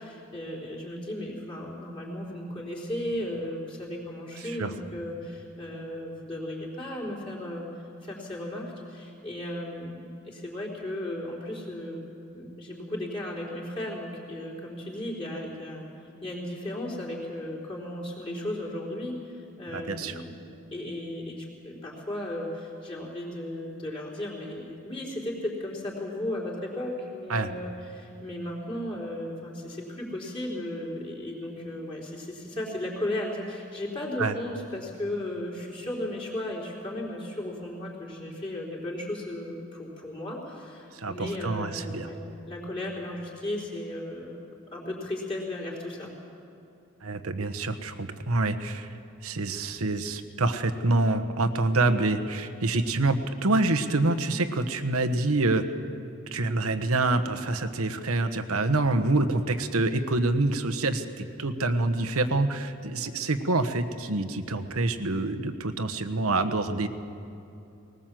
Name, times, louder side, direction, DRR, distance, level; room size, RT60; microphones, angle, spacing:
voice 1, 0.0-12.0 12.3-15.9 16.2-20.3 20.7-44.4 44.7-46.1, left 1 dB, 25° left, -3 dB, 4.1 m, -35 dB
voice 2, 19.7-20.1 27.3-27.5 34.2-34.3 40.9-42.1 47.0-48.9 49.2-55.6 56.3-66.9, right 2 dB, 85° right, 7 dB, 1.2 m, -26 dB
20.0 x 19.5 x 7.6 m, 2.8 s
head